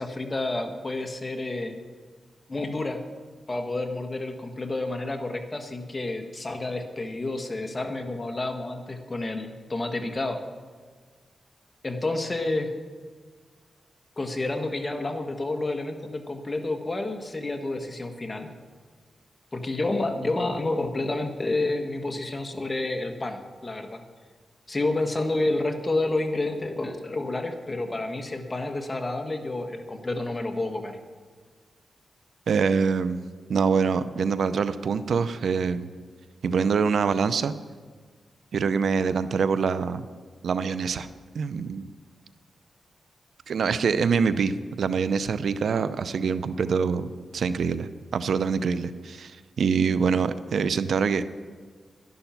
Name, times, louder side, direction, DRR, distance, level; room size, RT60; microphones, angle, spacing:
voice 1, 0.0-1.7 2.5-3.0 3.5-10.4 11.8-12.7 14.2-18.5 19.5-24.0 24.7-31.0, left 2 dB, 30° left, 5 dB, 1.6 m, -29 dB
voice 2, 32.5-33.2 33.5-35.9 36.4-37.5 38.5-40.0 40.4-41.1 41.3-41.9 43.5-51.2, right 5 dB, 75° right, 13 dB, 0.6 m, -25 dB
12.0 x 11.0 x 5.9 m, 1.5 s
cardioid pair, 70°, 0 cm